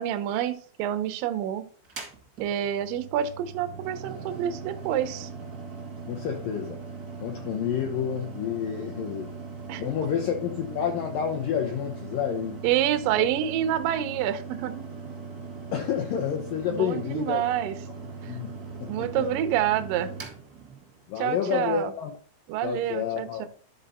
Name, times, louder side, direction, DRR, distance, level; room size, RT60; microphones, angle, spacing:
voice 1, 0.0-1.6 2.4-5.3 9.7-9.8 12.6-14.8 16.7-17.8 18.2-18.3 18.9-20.1 21.2-21.9 22.5-23.5, right 10 dB, 90° right, 8 dB, 1.9 m, -27 dB
Mechanical fan, 1.8-21.2, right 4 dB, 55° right, 1.0 m, -40 dB
voice 2, 6.1-6.8 7.2-9.3 9.8-12.6 13.2-13.3 15.7-17.4 18.3-19.3 21.1-22.1 22.6-23.5, left 8 dB, 80° left, 3 dB, 2.0 m, -29 dB
12.5 x 4.2 x 4.3 m, 0.42 s
omnidirectional pair, 5.2 m